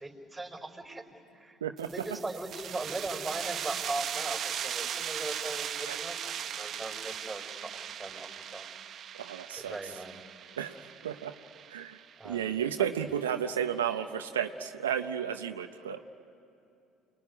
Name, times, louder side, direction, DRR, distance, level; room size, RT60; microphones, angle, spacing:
voice 1, 0.0-8.7 9.5-10.2 12.2-12.6, right 2 dB, 15° right, 5 dB, 4.4 m, -39 dB
sound 1, 1.8-13.1, right 9 dB, 50° right, 1.1 m, -39 dB
voice 2, 9.2-9.8 10.6-10.8 11.0-11.3 11.7-12.0 12.2-16.0, right 9 dB, 90° right, 6 dB, 0.7 m, -32 dB
28.5 x 20.5 x 9.8 m, 2.7 s
hypercardioid pair, 60°, 0 cm